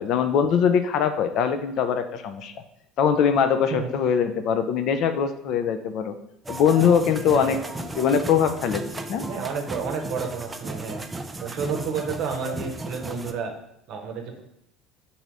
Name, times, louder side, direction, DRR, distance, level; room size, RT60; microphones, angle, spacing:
voice 1, 0.0-2.5 3.0-6.1 6.5-8.8 9.1-9.3, left 7 dB, 55° left, 9 dB, 0.4 m, -22 dB
sound 1, 6.4-13.3, right 2 dB, 20° right, 0.4 m, -35 dB
voice 2, 7.2-7.6 9.3-11.0 11.4-13.5 13.9-14.4, right 5 dB, 55° right, 3 dB, 0.7 m, -30 dB
3.9 x 2.7 x 4.6 m, 0.77 s
figure-of-eight pair, 65°, 0 cm